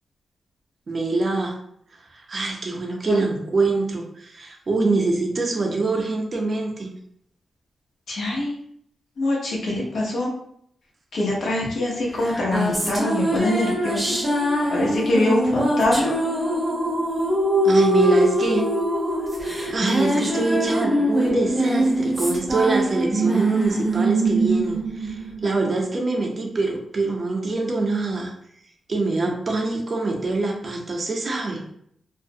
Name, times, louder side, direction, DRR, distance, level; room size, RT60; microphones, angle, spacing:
voice 1, 0.9-1.6 2.1-6.9 17.6-18.7 19.7-28.3 28.9-31.6, right 3 dB, 50° right, 1 dB, 0.5 m, -24 dB
voice 2, 8.1-8.5 9.2-10.3 11.1-14.2 14.7-16.2, left 1 dB, 70° left, -3 dB, 0.8 m, -23 dB
sound 1, 12.2-25.9, right 1 dB, 10° right, 0.7 m, -23 dB
2.4 x 2.0 x 2.6 m, 0.70 s
cardioid pair, 80°, 0 cm